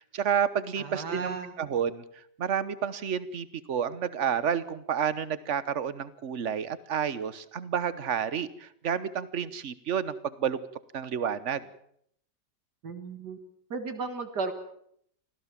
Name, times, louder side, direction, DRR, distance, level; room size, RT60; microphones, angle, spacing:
voice 1, 0.0-2.0 2.4-10.6 10.9-11.7, right 8 dB, 50° right, 16 dB, 1.3 m, -30 dB
voice 2, 0.8-1.5 12.8-13.4 13.7-14.5, right 4 dB, 75° right, 7 dB, 2.3 m, -34 dB
25.5 x 16.0 x 7.5 m, 0.69 s
omnidirectional pair, 1.8 m